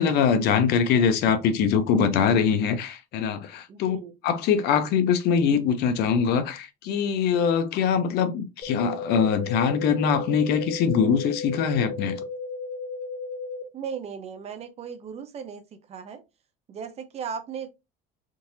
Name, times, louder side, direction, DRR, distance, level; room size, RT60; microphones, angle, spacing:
voice 1, 0.0-4.0 4.2-12.2, left 7 dB, 60° left, 0.7 m, -23 dB
voice 2, 3.7-4.1 13.7-16.2 16.7-17.7, right 7 dB, 35° right, 0.6 m, -37 dB
sound 1, 8.6-13.6, left 3 dB, 40° left, 1.9 m, -34 dB
3.7 x 2.7 x 2.7 m
cardioid pair, 145°, 18 cm